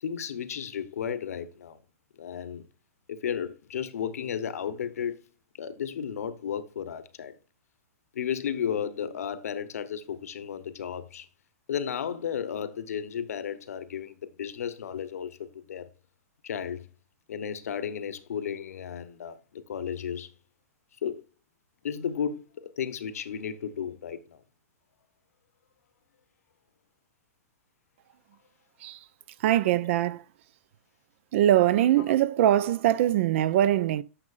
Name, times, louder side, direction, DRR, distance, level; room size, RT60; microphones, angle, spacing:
voice 1, 0.0-1.8 2.2-2.6 3.1-5.2 5.6-7.3 8.1-11.3 11.7-15.9 16.4-16.9 17.3-20.3 21.0-21.2 21.8-22.4 22.8-24.4, left 8 dB, 80° left, 0.9 m, -33 dB
voice 2, 29.4-30.2 31.3-34.0, right 12 dB, 55° right, 0.4 m, -22 dB
9.9 x 6.2 x 2.4 m
hypercardioid pair, 135°, 8 cm